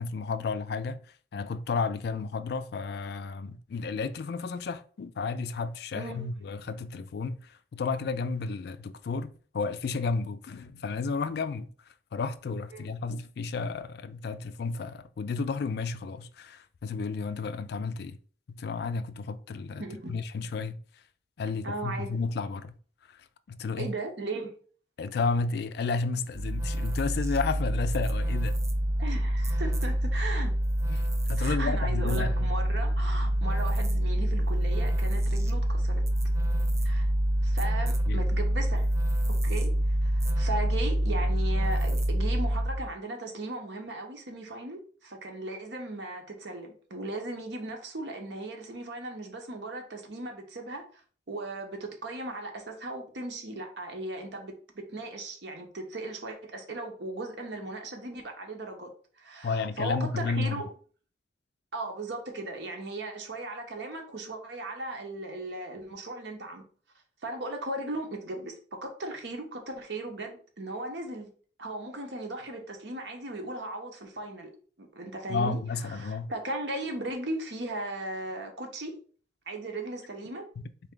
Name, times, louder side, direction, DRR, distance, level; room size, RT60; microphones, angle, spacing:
voice 1, 0.0-11.7 12.1-18.2 18.5-20.8 21.4-22.7 23.1-23.9 25.0-28.6 30.9-32.5 38.1-38.2 59.4-60.6 75.3-76.3, left 4 dB, 60° left, 0.3 m, -32 dB
voice 2, 19.8-20.1 21.6-22.2 23.8-24.5 29.0-30.5 31.4-36.0 36.8-37.1 37.4-38.9 39.4-39.7 40.0-50.9 51.3-58.9 59.2-60.7 61.7-66.6 67.2-71.3 71.6-74.5 74.8-75.6 75.9-79.0 79.5-80.5, right 2 dB, 75° right, 1.0 m, -37 dB
sound 1, 26.3-42.9, equal, 15° right, 0.4 m, -26 dB
4.1 x 3.3 x 3.7 m
head